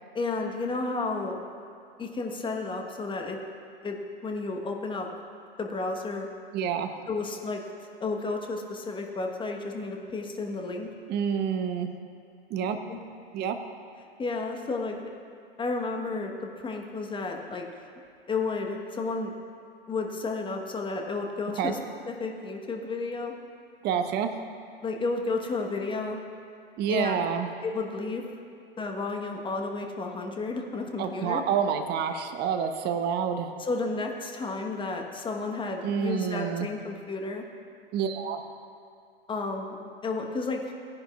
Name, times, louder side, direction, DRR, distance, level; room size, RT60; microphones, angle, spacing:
voice 1, 0.1-1.4 2.0-3.4 3.8-5.1 5.6-6.3 7.1-7.6 8.0-10.9 12.9-13.0 14.2-15.0 15.6-17.6 18.3-19.3 19.9-21.8 22.1-23.3 24.8-26.2 26.9-27.3 27.6-28.2 28.8-31.4 33.6-37.4 39.3-39.7 40.0-40.7, left 3 dB, 15° left, 2 dB, 1.2 m, -32 dB
voice 2, 6.5-6.9 11.1-11.9 12.5-12.8 13.3-13.6 21.6-21.7 23.8-24.3 26.8-27.5 31.0-33.5 35.8-36.7 37.9-38.4, right 7 dB, 35° right, 7 dB, 0.9 m, -28 dB
17.5 x 10.5 x 2.4 m, 2.4 s
figure-of-eight pair, 95°, 30 cm